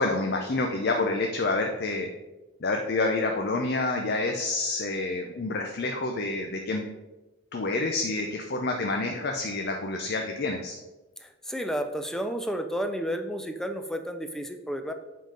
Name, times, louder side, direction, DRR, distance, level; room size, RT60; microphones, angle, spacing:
voice 1, 0.0-2.1 2.6-6.8 7.5-10.8, left 2 dB, 55° left, 3 dB, 0.6 m, -28 dB
voice 2, 11.2-14.9, equal, 5° left, 6 dB, 0.5 m, -31 dB
7.8 x 3.8 x 5.0 m, 1.1 s
head